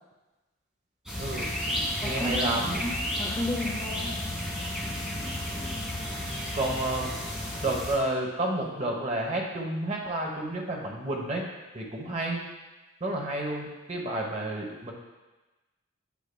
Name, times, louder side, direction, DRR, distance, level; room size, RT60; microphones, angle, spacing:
sound 1, 1.1-8.0, left 1 dB, 5° right, 1.4 m, -32 dB
voice 1, 1.2-2.8 6.5-7.1 7.6-11.5 11.7-12.4 13.0-14.9, right 1 dB, 30° right, 0 dB, 1.0 m, -31 dB
voice 2, 2.0-4.2, left 1 dB, 15° left, -1 dB, 0.5 m, -33 dB
8.3 x 7.2 x 2.3 m, 1.2 s
head